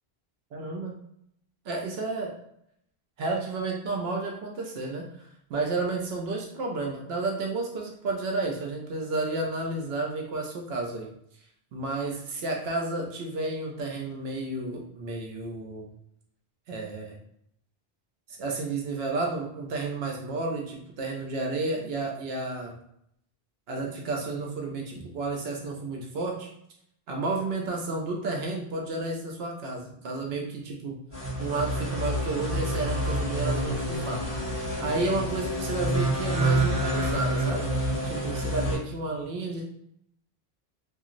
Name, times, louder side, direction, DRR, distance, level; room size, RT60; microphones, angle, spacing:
voice 1, 0.5-0.9 1.6-2.3 3.2-11.1 11.7-15.9 16.7-17.2 18.3-22.7 23.7-26.5 27.1-30.9 31.4-34.2 34.8-37.7 38.0-39.6, right 3 dB, 75° right, 0 dB, 0.8 m, -31 dB
sound 1, 31.1-38.8, right 1 dB, 25° left, 1.6 m, -28 dB
2.8 x 2.5 x 2.5 m, 0.74 s
omnidirectional pair, 1.0 m